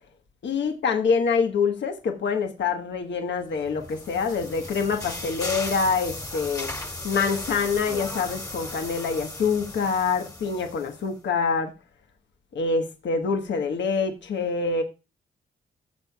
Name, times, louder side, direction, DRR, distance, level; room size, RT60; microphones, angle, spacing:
voice 1, 0.4-6.7 7.0-11.7 12.5-14.8, left 5 dB, 70° left, 1.3 m, -25 dB
sound 1, 3.5-11.1, left 2 dB, 20° left, 1.8 m, -36 dB
15.0 x 7.3 x 2.3 m
cardioid pair, 85°, 20 cm